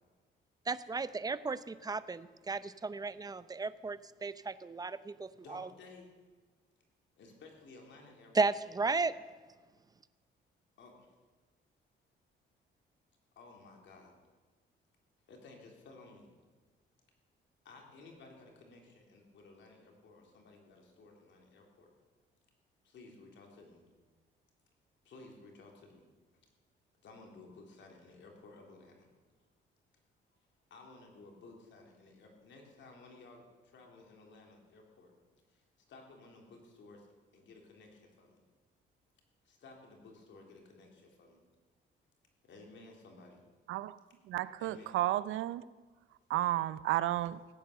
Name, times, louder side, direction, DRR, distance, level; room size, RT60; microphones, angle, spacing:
voice 1, 0.7-5.7 8.3-9.1, right 4 dB, 20° right, 0.6 m, -34 dB
voice 2, 5.4-6.1 7.2-8.6 10.8-11.1 13.4-14.1 15.3-16.3 17.7-21.9 22.8-23.8 25.1-26.0 27.0-29.1 30.7-35.1 35.5-37.1 37.3-38.4 39.5-41.4 42.4-43.4 44.6-45.0, left 3 dB, 70° left, 3.4 m, -55 dB
voice 3, 44.3-45.7 46.3-47.4, right 15 dB, 85° right, 0.5 m, -32 dB
16.5 x 9.2 x 6.8 m
cardioid pair, 90°, 20 cm